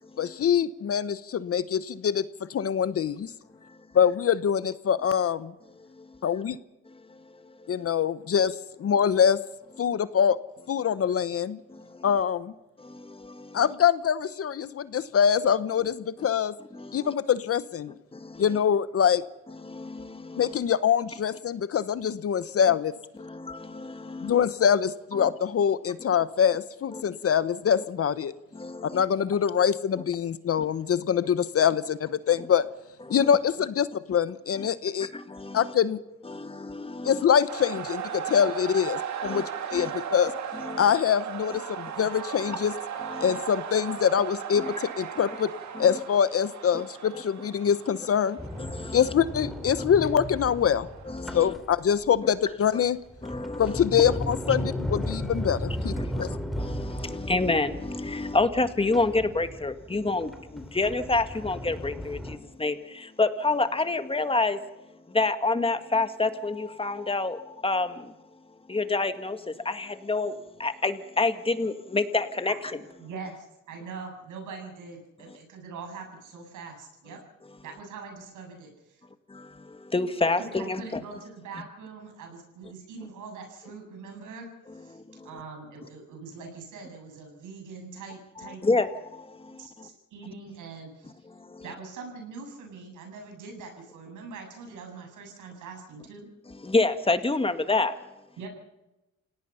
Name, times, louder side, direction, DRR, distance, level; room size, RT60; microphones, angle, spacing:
voice 1, 0.2-2.2 2.5-3.3 3.9-5.5 6.2-6.6 7.7-9.4 9.8-10.4 10.7-11.6 12.0-12.5 13.5-16.5 16.9-17.9 18.4-19.2 20.4-22.9 24.2-28.3 28.9-32.6 33.1-35.1 35.5-36.0 37.0-39.4 39.7-40.3 40.8-42.7 43.2-45.5 45.8-48.4 48.9-50.9 51.3-53.0 53.6-56.3, left 8 dB, 50° left, 15 dB, 1.0 m, -24 dB
voice 2, 6.9-7.2 7.6-7.9 11.7-12.1 12.8-13.6 16.7-17.1 18.1-18.4 19.6-20.6 23.2-24.4 25.1-25.3 26.9-27.0 28.5-29.0 30.6-30.7 33.1-33.2 35.1-35.6 36.2-37.2 39.2-39.4 39.7-39.9 40.6-40.8 43.0-43.4 44.6-44.7 45.7-45.9 48.6-49.1 51.1-51.5 53.2-53.8 55.9-64.6 65.1-68.1 68.7-72.5 79.3-81.0 84.9-85.3 88.6-89.9 91.4-91.6 96.6-97.9, left 3 dB, 20° left, 9 dB, 1.9 m, -28 dB
sound 1, 37.5-51.3, right 8 dB, 65° right, 2.6 m, -37 dB
Sliding door, 48.4-52.2 52.8-62.4, equal, ahead, 3.2 m, -35 dB
voice 3, 73.0-77.2 77.6-79.0 80.2-84.5 84.7-88.6 89.6-91.3 91.6-96.3 98.4-98.5, right 4 dB, 85° right, 3 dB, 7.7 m, -43 dB
28.0 x 18.0 x 5.7 m, 0.97 s
cardioid pair, 90°, 30 cm